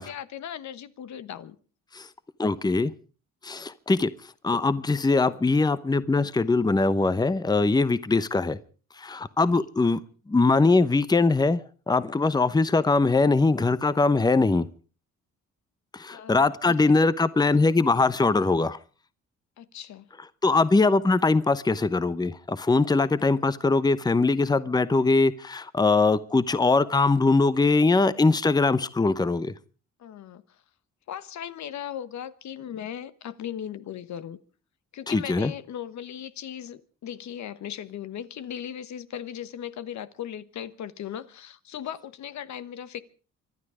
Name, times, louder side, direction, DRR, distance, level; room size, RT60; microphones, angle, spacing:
voice 1, 0.0-1.6 9.5-9.6 16.1-16.9 19.6-20.1 30.0-30.6 31.1-34.4 34.9-43.0, left 10 dB, 65° left, 1.1 m, -38 dB
voice 2, 2.4-2.9 3.4-4.1 4.4-8.6 9.0-10.0 10.3-11.6 11.9-14.7 15.9-18.8 20.4-29.5 35.1-35.5, left 3 dB, 15° left, 0.8 m, -22 dB
25.5 x 11.5 x 4.9 m
cardioid pair, 90°, 30 cm